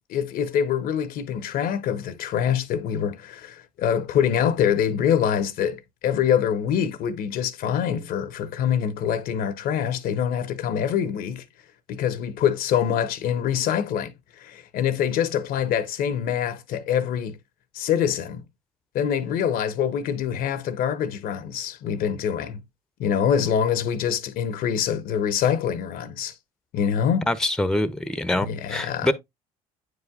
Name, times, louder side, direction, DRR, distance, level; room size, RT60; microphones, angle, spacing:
voice 1, 0.0-11.4 11.9-17.3 17.7-18.4 18.9-22.6 23.0-26.3 26.7-27.3 28.4-29.1, left 8 dB, 60° left, 0.7 m, -25 dB
voice 2, 27.3-29.1, left 1 dB, 5° left, 0.6 m, -25 dB
9.3 x 4.8 x 2.3 m
hypercardioid pair, 70°, 17 cm